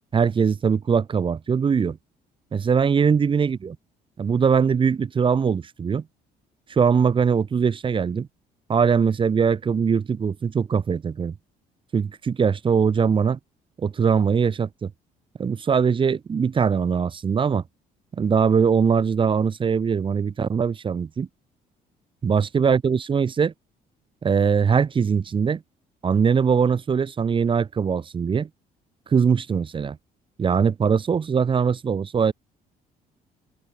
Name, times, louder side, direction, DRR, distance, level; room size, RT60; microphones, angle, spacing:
voice 1, 0.1-2.0 2.5-3.8 4.2-6.0 6.7-8.3 8.7-11.3 11.9-13.4 13.8-14.9 15.4-17.6 18.1-21.3 22.2-23.5 24.2-25.6 26.0-28.5 29.1-30.0 30.4-32.3, right 6 dB, 30° right, 0.9 m, -21 dB
open air
cardioid pair, 110°, 17 cm